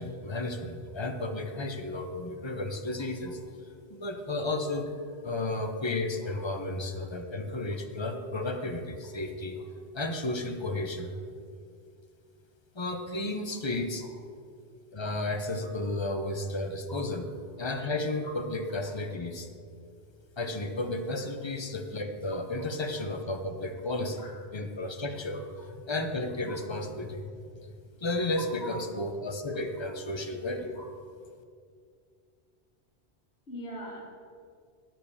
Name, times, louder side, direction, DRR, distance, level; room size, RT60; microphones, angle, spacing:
voice 1, 0.0-3.4 3.9-4.9 5.2-9.6 9.9-11.2 12.7-14.0 14.9-17.3 17.6-19.5 20.4-24.2 24.5-25.4 25.9-27.2 27.6-27.7 28.0-30.8, left 2 dB, 30° left, 5 dB, 0.7 m, -33 dB
voice 2, 33.5-34.0, equal, 75° left, -4 dB, 2.2 m, -43 dB
8.9 x 5.2 x 6.9 m, 2.2 s
omnidirectional pair, 1.1 m